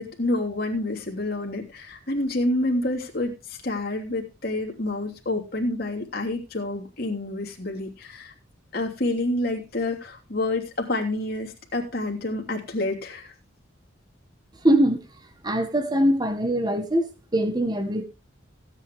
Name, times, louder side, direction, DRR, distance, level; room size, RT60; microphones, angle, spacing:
voice 1, 0.0-8.3 8.7-13.3, left 2 dB, 50° left, 3.1 m, -28 dB
voice 2, 14.6-15.0 15.4-17.1 17.3-18.0, right 1 dB, 20° right, 1.8 m, -22 dB
16.5 x 9.1 x 3.5 m
head